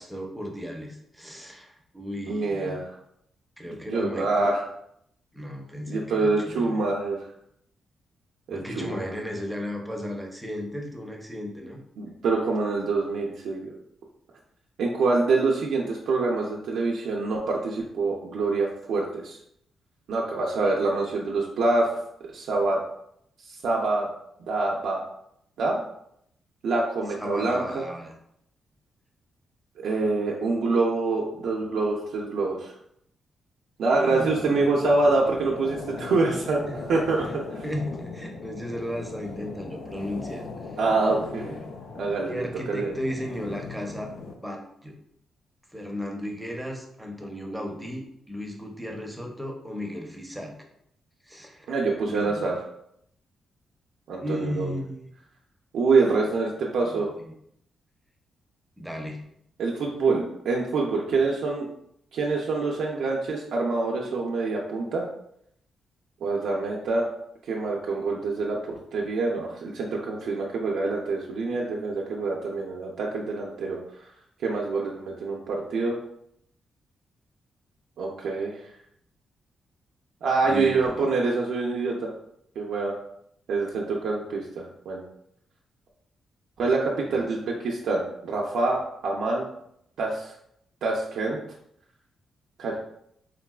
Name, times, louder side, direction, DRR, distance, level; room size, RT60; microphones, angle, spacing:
voice 1, 0.0-2.8 3.6-4.5 5.3-6.9 8.5-11.8 27.2-28.1 33.9-34.6 36.0-36.1 36.7-36.8 37.2-37.3 37.6-40.4 42.3-44.1 44.4-44.9 45.7-50.6 51.2-51.7 52.0-52.5 54.2-55.1 56.9-57.3 58.8-59.2 80.4-81.1 87.1-87.3, equal, ahead, 0 dB, 0.4 m, -35 dB
voice 2, 2.3-2.9 3.7-4.6 5.9-7.3 8.5-9.1 12.0-13.8 14.8-19.4 20.1-21.9 22.3-22.8 23.4-24.1 24.5-25.1 25.6-25.8 26.6-27.8 29.8-32.7 33.8-36.6 36.9-37.6 40.8-41.6 42.0-42.9 51.7-52.5 54.1-54.7 55.7-57.1 59.6-61.7 62.1-65.1 66.2-67.1 67.4-74.1 74.4-75.9 78.0-78.7 80.2-82.1 82.6-82.9 83.5-85.0 86.6-89.4 90.0-90.3 90.8-91.4 92.6-92.8, right 3 dB, 75° right, -2 dB, 0.4 m, -26 dB
sound 1, 34.1-44.4, left 3 dB, 70° left, 0.4 m, -39 dB
3.6 x 2.3 x 2.2 m, 0.74 s
wide cardioid pair, 170°, 0 cm